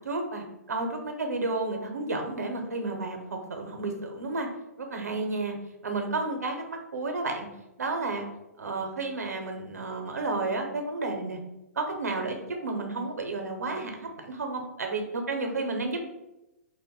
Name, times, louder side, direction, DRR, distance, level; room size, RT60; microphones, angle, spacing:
voice 1, 0.0-4.5 4.8-5.6 5.8-7.5 7.8-8.3 8.6-11.4 11.8-16.0, right 3 dB, 80° right, 4 dB, 0.6 m, -31 dB
2.5 x 2.1 x 3.6 m, 0.95 s
figure-of-eight pair, 120°, 9 cm